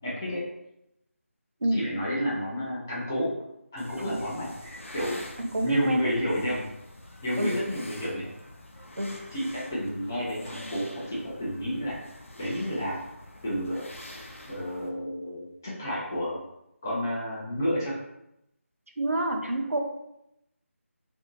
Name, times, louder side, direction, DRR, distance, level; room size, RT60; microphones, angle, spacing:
voice 1, 0.0-0.4 1.7-3.3 3.7-5.2 5.6-6.6 7.2-8.3 9.3-11.9 12.4-13.1 13.4-13.9 14.5-16.5 16.8-18.0, equal, 10° left, -7 dB, 0.3 m, -30 dB
sound 1, 3.8-14.9, left 1 dB, 65° left, 0.6 m, -46 dB
voice 2, 5.4-6.1 7.4-7.6 9.0-9.1 19.0-19.8, right 1 dB, 70° right, 2 dB, 0.5 m, -27 dB
2.7 x 2.5 x 2.6 m, 0.82 s
figure-of-eight pair, 160°, 8 cm